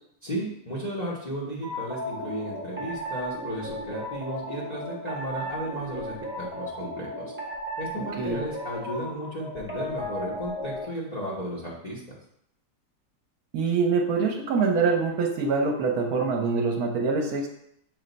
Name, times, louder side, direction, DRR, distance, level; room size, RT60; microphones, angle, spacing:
voice 1, 0.2-7.3 7.8-12.0, equal, 35° left, -6 dB, 0.7 m, -34 dB
sound 1, 1.6-10.9, equal, 10° right, 0.7 m, -35 dB
voice 2, 13.5-17.5, right 4 dB, 70° right, 2 dB, 1.1 m, -24 dB
6.3 x 2.2 x 3.9 m, 0.73 s
omnidirectional pair, 1.7 m